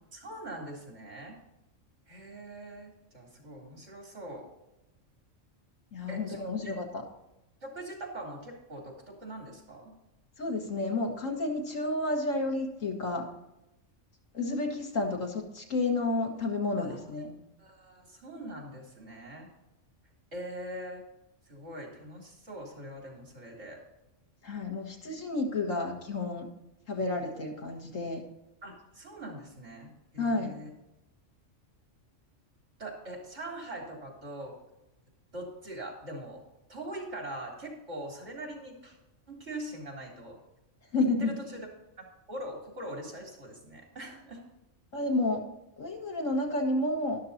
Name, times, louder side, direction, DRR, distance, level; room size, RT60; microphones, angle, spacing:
voice 1, 0.1-1.4 2.1-4.5 6.1-6.7 7.6-9.9 16.8-17.0 17.6-19.5 20.3-21.0 21.5-23.8 28.6-30.7 32.8-34.6 35.3-36.4 36.7-39.0 39.3-40.4 41.2-41.7 42.3-44.4, right 1 dB, 65° right, -1 dB, 3.7 m, -42 dB
voice 2, 5.9-7.0 10.4-13.3 14.3-17.4 24.4-26.5 26.9-28.2 30.2-30.5 40.9-41.3 44.9-45.5 45.8-47.2, left 2 dB, 85° left, 2 dB, 2.2 m, -31 dB
12.5 x 12.0 x 2.8 m, 0.93 s
omnidirectional pair, 1.3 m